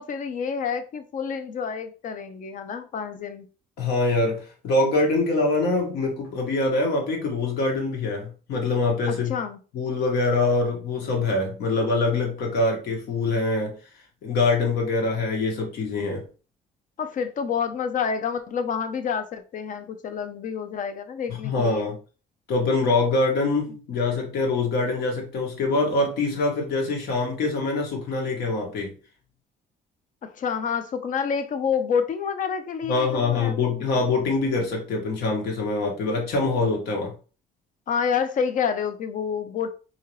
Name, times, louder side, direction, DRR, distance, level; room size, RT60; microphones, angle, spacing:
voice 1, 0.0-3.5 9.1-9.6 17.0-21.9 30.2-34.1 37.9-39.7, left 6 dB, 50° left, 0.7 m, -28 dB
voice 2, 3.8-9.4 9.7-13.8 14.2-16.3 21.4-22.0 22.5-29.0 32.9-37.1, left 3 dB, 75° left, 1.6 m, -24 dB
4.2 x 2.9 x 3.1 m
cardioid pair, 110°, 17 cm